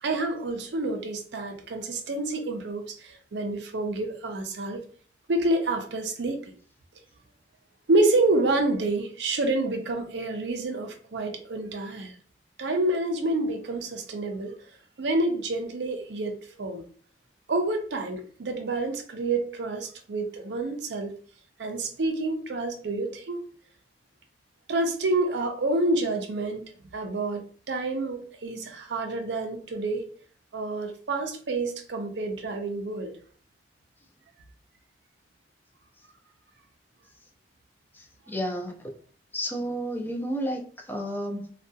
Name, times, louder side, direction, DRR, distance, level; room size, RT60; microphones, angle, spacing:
voice 1, 0.0-4.8 5.3-6.5 7.9-12.1 12.6-14.5 15.0-16.8 17.5-21.1 21.6-23.4 24.7-30.1 30.5-33.1, right 2 dB, 75° right, 0.5 m, -28 dB
voice 2, 37.9-38.8 39.3-41.5, equal, 10° left, 0.4 m, -31 dB
2.7 x 2.3 x 2.2 m
head